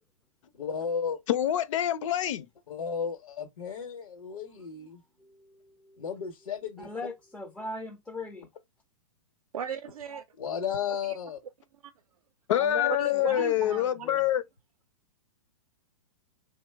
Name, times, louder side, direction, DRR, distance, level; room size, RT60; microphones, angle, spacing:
voice 1, 0.5-1.2 2.7-5.0 6.0-6.9 10.4-11.4, left 7 dB, 85° left, 0.8 m, -34 dB
voice 2, 1.3-2.5 12.5-14.4, left 12 dB, 60° left, 0.5 m, -26 dB
voice 3, 5.2-6.0 6.8-8.5 12.6-14.2, left 2 dB, 5° left, 0.3 m, -40 dB
voice 4, 9.5-10.2 13.0-14.1, right 8 dB, 90° right, 0.4 m, -37 dB
3.1 x 2.0 x 3.3 m
hypercardioid pair, 135°, 18 cm